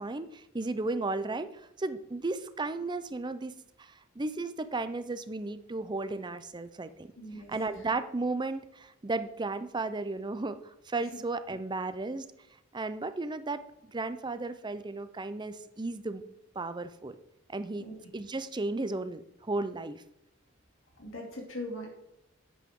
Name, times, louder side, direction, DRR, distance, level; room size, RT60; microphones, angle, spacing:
voice 1, 0.0-7.1 7.5-12.3 12.7-16.2 16.5-17.2 17.5-17.9 18.1-20.0, right 3 dB, 20° right, 12 dB, 0.6 m, -34 dB
voice 2, 7.2-7.5 17.8-17.9 21.0-21.9, left 1 dB, 75° left, 0 dB, 2.6 m, -40 dB
10.5 x 8.5 x 3.7 m, 0.86 s
head